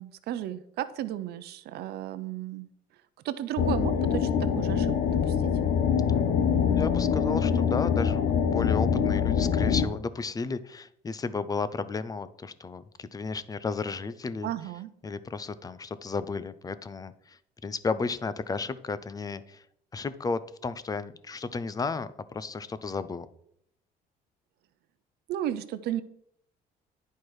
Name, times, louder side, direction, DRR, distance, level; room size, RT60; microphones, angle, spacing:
voice 1, 0.0-2.7 3.2-5.5 14.4-14.9 25.3-26.0, right 12 dB, 70° right, 12 dB, 0.6 m, -34 dB
sound 1, 3.6-9.9, left 7 dB, 70° left, 0.9 m, -24 dB
voice 2, 6.1-14.5 15.0-19.6 19.9-23.3, left 4 dB, 20° left, 14 dB, 0.5 m, -33 dB
10.5 x 4.5 x 4.8 m, 0.71 s
cardioid pair, 110°, 17 cm